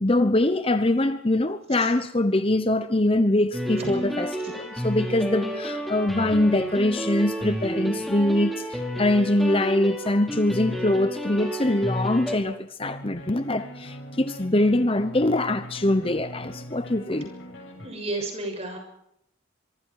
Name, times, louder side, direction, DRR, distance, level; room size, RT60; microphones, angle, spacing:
voice 1, 0.0-17.3, left 1 dB, 30° left, 0.9 m, -23 dB
sound 1, 3.5-12.4, equal, ahead, 4.9 m, -31 dB
sound 2, 12.8-17.9, equal, 75° left, 6.8 m, -41 dB
voice 2, 17.8-18.8, right 2 dB, 30° right, 6.9 m, -32 dB
25.0 x 24.0 x 4.8 m
head